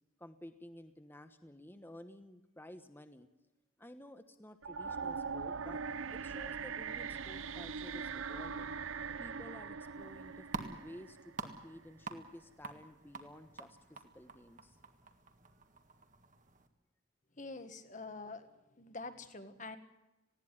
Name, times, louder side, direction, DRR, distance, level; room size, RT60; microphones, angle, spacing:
voice 1, 0.2-3.3 3.8-5.8 6.1-8.8 9.2-14.8, left 1 dB, 10° left, 9 dB, 1.1 m, -53 dB
cat synth, 4.6-11.7, right 5 dB, 70° right, 0.7 m, -41 dB
sound 1, 9.9-16.7, right 3 dB, 35° right, 1.7 m, -48 dB
voice 2, 17.4-18.5 18.8-19.8, left 3 dB, 35° left, 9 dB, 1.6 m, -46 dB
19.5 x 16.5 x 10.0 m, 0.98 s
head